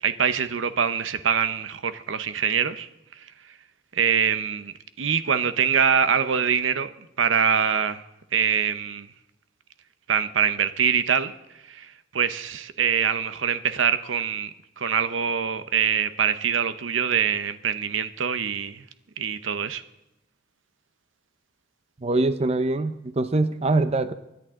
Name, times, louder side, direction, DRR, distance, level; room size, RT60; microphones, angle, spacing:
voice 1, 0.0-2.9 3.9-6.9 7.2-8.0 8.3-9.1 10.1-11.3 11.7-11.9 12.1-14.5 14.8-18.8 19.2-19.8, right 7 dB, 85° right, 11 dB, 0.8 m, -24 dB
voice 2, 22.0-24.1, right 2 dB, 35° right, 11 dB, 0.6 m, -23 dB
24.5 x 10.5 x 3.7 m, 0.89 s
head